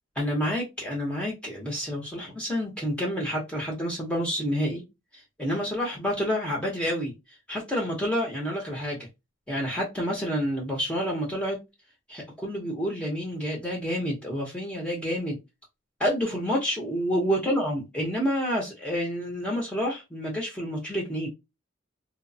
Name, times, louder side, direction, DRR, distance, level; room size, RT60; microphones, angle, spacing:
voice 1, 0.2-4.8 5.4-7.1 7.5-9.0 9.5-11.6 12.1-15.4 16.0-21.3, equal, 5° left, 0.7 m, -28 dB
3.0 x 2.0 x 2.6 m
head